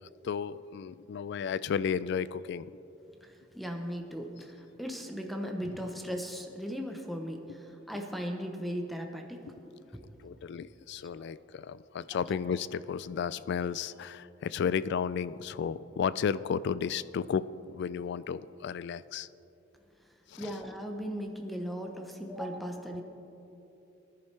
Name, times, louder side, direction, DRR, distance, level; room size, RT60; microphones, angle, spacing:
voice 1, 0.0-2.7 10.2-19.3 20.3-20.5, left 7 dB, 60° left, 17 dB, 0.3 m, -33 dB
voice 2, 3.2-10.0 11.2-11.3 12.1-12.2 20.4-23.0, equal, ahead, 3 dB, 0.8 m, -38 dB
20.0 x 10.5 x 3.3 m, 2.9 s
head